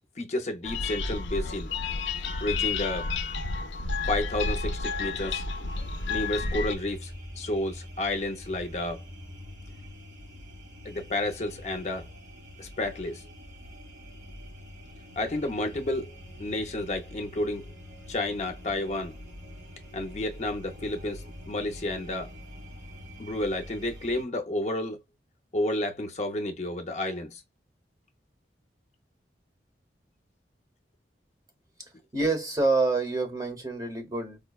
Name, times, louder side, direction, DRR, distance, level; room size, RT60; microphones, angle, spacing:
voice 1, 0.2-1.7 2.4-3.1 4.1-5.4 6.1-9.0 10.8-12.1 12.6-13.2 15.2-16.1 16.4-17.7 18.1-19.1 19.9-22.3 23.2-25.0 25.5-27.4, left 1 dB, 40° left, 0.5 m, -31 dB
sound 1, 0.6-6.8, left 4 dB, 85° left, 0.5 m, -31 dB
sound 2, 5.7-24.2, equal, 85° right, 1.3 m, -45 dB
voice 2, 32.1-34.4, right 3 dB, 20° right, 0.8 m, -27 dB
4.9 x 2.1 x 2.3 m
head